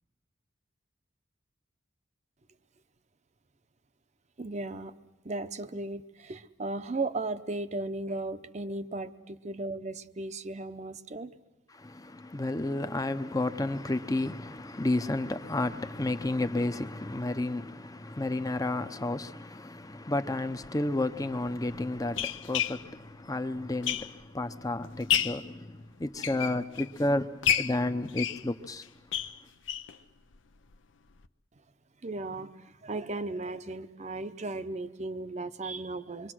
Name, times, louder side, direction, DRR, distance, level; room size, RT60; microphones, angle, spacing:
voice 1, 4.4-4.9 5.2-11.3 32.0-36.3, right 2 dB, 35° right, 0.7 m, -36 dB
voice 2, 11.7-28.9, left 2 dB, 20° left, 0.7 m, -31 dB
sound 1, 20.6-20.7 21.5-24.4 24.8-25.5 26.0-27.0 27.4-30.0 30.3-30.4 30.7-30.8 31.2-31.3, left 9 dB, 75° left, 0.7 m, -31 dB
26.0 x 23.5 x 6.2 m
head